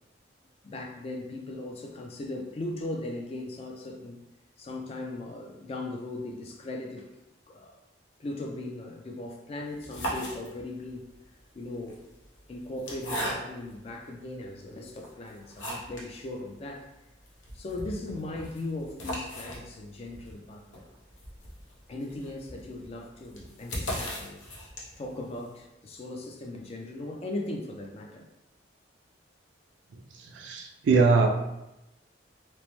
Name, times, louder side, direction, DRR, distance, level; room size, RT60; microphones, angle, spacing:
voice 1, 0.6-4.2 4.6-7.1 7.5-7.8 8.2-11.1 11.5-12.0 12.5-16.9 17.5-20.9 21.9-24.4 25.0-28.3, left 2 dB, 35° left, 2 dB, 0.3 m, -38 dB
sound 1, 9.7-10.9 11.7-13.8 14.4-14.5 15.0-16.1 16.4-16.5 16.8-16.9 17.3-25.1, equal, 85° left, 0.8 m, -38 dB
voice 2, 29.9-31.3, right 4 dB, 75° right, 2 dB, 0.4 m, -23 dB
3.0 x 2.0 x 3.0 m, 0.92 s
head